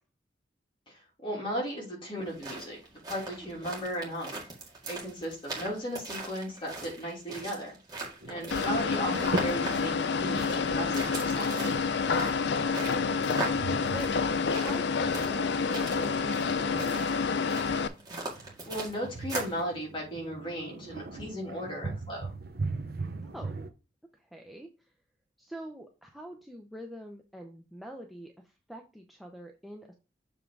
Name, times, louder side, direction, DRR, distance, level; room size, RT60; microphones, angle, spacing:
voice 1, 0.9-2.8 3.1-4.4 4.9-7.8 8.3-11.7 18.4-22.3, equal, 25° left, -2 dB, 3.0 m, -36 dB
sound 1, 2.2-19.6, right 2 dB, 20° right, 1.9 m, -40 dB
sound 2, 8.2-23.7, right 2 dB, 55° right, 0.8 m, -41 dB
sound 3, 8.5-17.9, left 5 dB, 65° left, 0.5 m, -28 dB
voice 2, 14.5-17.1 23.2-23.6 24.1-24.9 25.4-29.9, equal, ahead, 3 dB, 0.6 m, -45 dB
7.1 x 3.6 x 4.7 m, 0.31 s
head